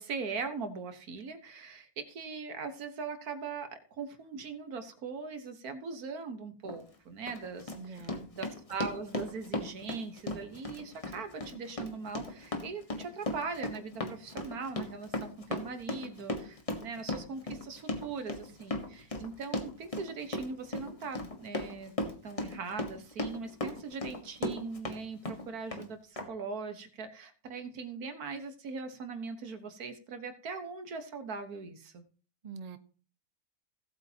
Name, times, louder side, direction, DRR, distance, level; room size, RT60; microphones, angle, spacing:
voice 1, 0.0-21.9 22.2-32.0, right 4 dB, 85° right, 8 dB, 1.8 m, -40 dB
Run, 6.6-6.8 7.3-25.0 25.3-25.9 26.2-26.3, left 2 dB, 25° left, 1.4 m, -37 dB
voice 2, 7.7-8.3 32.4-32.8, right 5 dB, 35° right, 10 dB, 0.8 m, -44 dB
17.5 x 8.3 x 2.9 m, 0.40 s
omnidirectional pair, 1.5 m